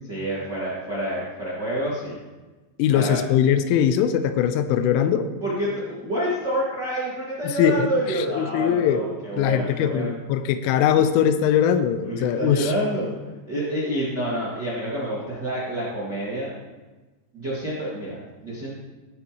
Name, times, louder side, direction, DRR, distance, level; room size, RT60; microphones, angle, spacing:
voice 1, 0.1-2.2 2.9-3.2 5.4-10.1 12.0-16.5 17.3-18.7, equal, 65° right, -8 dB, 1.0 m, -28 dB
voice 2, 2.8-5.3 7.4-7.8 8.3-9.0 9.4-12.7, left 9 dB, 85° left, 10 dB, 3.1 m, -21 dB
16.0 x 8.5 x 3.0 m, 1.2 s
omnidirectional pair, 5.7 m